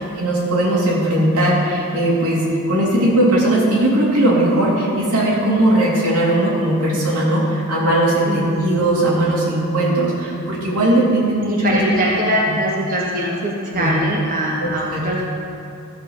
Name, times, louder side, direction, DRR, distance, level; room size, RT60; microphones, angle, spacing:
voice 1, 0.0-11.8 13.7-14.0 14.6-15.1, right 1 dB, 90° right, -5 dB, 2.8 m, -18 dB
voice 2, 8.2-8.6 11.5-15.2, equal, 40° right, -3 dB, 1.2 m, -22 dB
13.5 x 5.3 x 7.1 m, 2.7 s
head